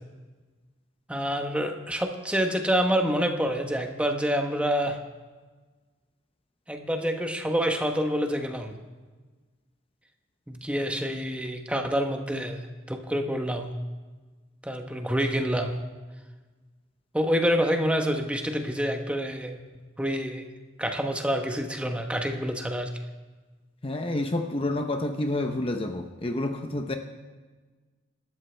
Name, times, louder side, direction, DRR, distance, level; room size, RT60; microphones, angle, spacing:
voice 1, 1.1-5.0 6.7-8.8 10.5-12.6 12.9-13.7 14.6-15.8 17.1-19.6 20.0-20.5 20.8-22.9, equal, 5° right, 4 dB, 1.0 m, -27 dB
voice 2, 23.8-27.0, left 1 dB, 25° left, 5 dB, 0.8 m, -29 dB
26.0 x 13.0 x 3.4 m, 1.3 s
head